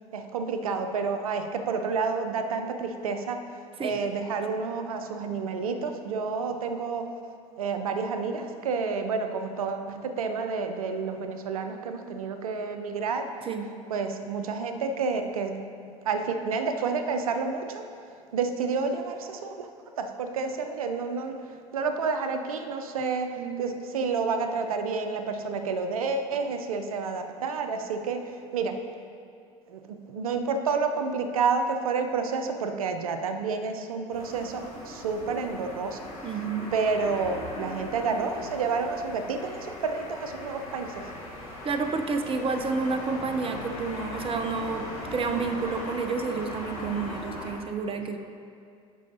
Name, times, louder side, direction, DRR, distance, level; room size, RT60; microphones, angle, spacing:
voice 1, 0.1-3.4 3.8-7.1 7.6-13.3 13.9-15.6 16.0-17.9 18.3-19.7 20.0-28.8 29.7-36.1 36.7-41.1, right 4 dB, 85° right, 7 dB, 0.6 m, -29 dB
voice 2, 13.4-13.8 23.0-23.8 36.2-36.7 41.6-48.2, right 4 dB, 30° right, 6 dB, 0.8 m, -30 dB
sound 1, 34.1-47.5, left 1 dB, 90° left, 1.5 m, -39 dB
13.5 x 5.4 x 2.8 m, 2.3 s
hypercardioid pair, 75°, 18 cm